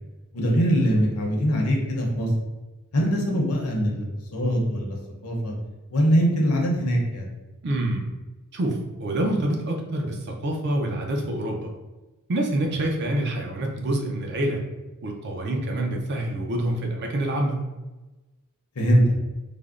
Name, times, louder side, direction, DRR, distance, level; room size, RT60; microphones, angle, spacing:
voice 1, 0.3-2.3 2.9-4.0 4.3-5.0 5.2-5.5 5.9-7.3 18.8-19.0, equal, 70° left, 0 dB, 0.7 m, -22 dB
voice 2, 7.6-8.1 8.5-11.7 12.3-14.6 15.0-17.6, right 1 dB, 50° right, 1 dB, 0.5 m, -26 dB
3.4 x 2.0 x 2.4 m, 1.1 s
head